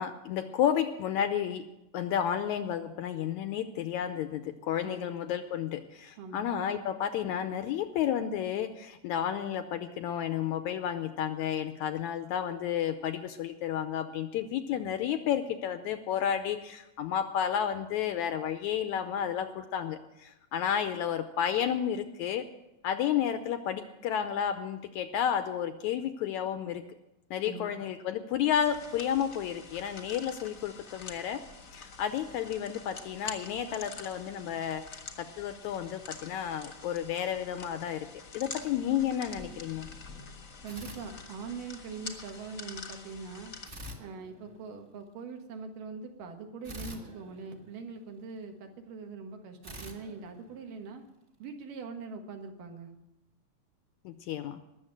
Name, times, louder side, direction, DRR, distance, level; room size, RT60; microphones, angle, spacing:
voice 1, 0.0-1.7 1.9-22.4 22.8-26.8 27.3-31.4 31.7-38.1 38.3-39.9 54.1-54.6, left 9 dB, 80° left, 9 dB, 1.8 m, -31 dB
voice 2, 4.8-5.1 6.2-6.5 27.4-27.7 40.6-43.5 44.0-51.0 51.4-52.9, right 4 dB, 75° right, 4 dB, 3.1 m, -42 dB
sound 1, 28.6-43.7, left 4 dB, 45° left, 1.0 m, -46 dB
sound 2, 40.7-41.8 43.6-45.0 46.6-48.3 49.6-51.2, equal, 30° right, 1.4 m, -47 dB
20.0 x 7.3 x 7.6 m, 0.92 s
omnidirectional pair, 3.9 m